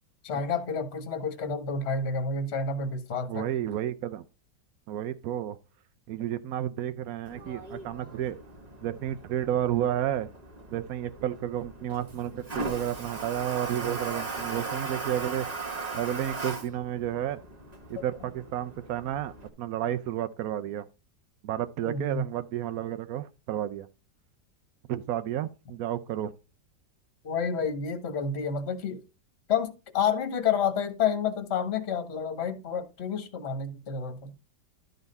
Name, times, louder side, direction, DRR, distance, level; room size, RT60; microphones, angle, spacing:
voice 1, 0.2-3.4 21.8-22.2 27.2-29.0 29.5-34.3, left 6 dB, 40° left, 1.3 m, -29 dB
voice 2, 3.3-4.2 4.9-5.6 6.1-8.4 8.8-10.3 10.7-15.6 15.9-17.4 17.9-20.9 21.4-23.9 24.9-26.3, right 11 dB, 70° right, 0.9 m, -31 dB
Toilet flush, 7.3-19.5, right 3 dB, 25° right, 1.2 m, -39 dB
12.0 x 4.0 x 5.4 m
omnidirectional pair, 2.0 m